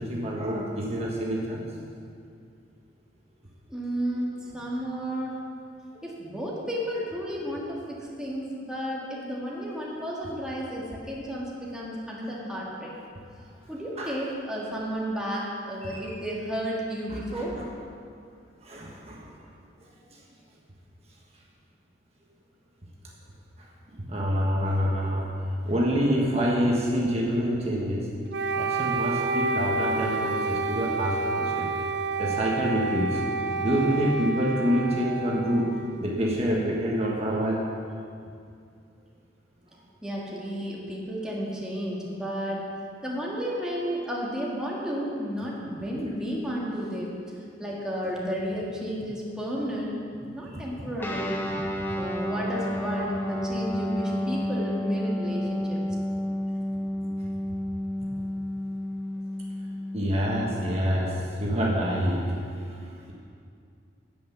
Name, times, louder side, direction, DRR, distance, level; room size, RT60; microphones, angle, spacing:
voice 1, 0.0-1.8 5.9-6.0 14.0-14.1 15.8-16.0 17.1-17.6 18.6-19.3 24.1-25.3 25.6-28.1 28.5-31.7 32.2-33.2 33.6-35.7 36.0-37.7 50.4-50.6 51.5-51.6 51.9-52.0 59.9-62.8, equal, 35° right, -3 dB, 1.4 m, -27 dB
voice 2, 3.7-5.4 6.0-13.0 13.7-17.6 40.0-42.6 43.0-47.2 47.6-50.0 50.3-51.4 51.9-55.8, equal, 5° right, -5 dB, 1.7 m, -32 dB
Wind instrument woodwind instrument, 28.3-36.4, right 3 dB, 70° right, 0.5 m, -29 dB
Guitar, 51.0-60.9, left 1 dB, 10° left, 1.1 m, -31 dB
9.4 x 8.6 x 6.9 m, 2.3 s
head